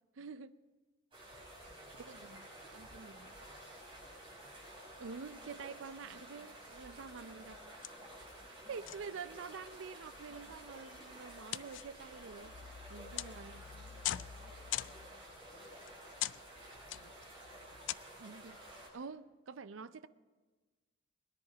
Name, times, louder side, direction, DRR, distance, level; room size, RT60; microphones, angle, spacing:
voice 1, 0.2-0.6 2.0-2.4 2.7-3.3 5.0-7.5 8.5-12.5 12.9-13.9 18.2-18.6 18.9-20.1, right 5 dB, 85° right, 0.5 m, -47 dB
sound 1, 1.1-18.9, right 1 dB, 25° right, 5.9 m, -52 dB
voice 2, 1.6-5.3 7.2-8.1 8.6-9.3 12.9-19.0, right 1 dB, ahead, 4.4 m, -65 dB
sound 2, 6.7-7.1 7.4-7.6 7.8-8.6 8.9-9.4 10.0-18.0, left 13 dB, 75° left, 0.3 m, -43 dB
20.5 x 10.5 x 5.0 m
head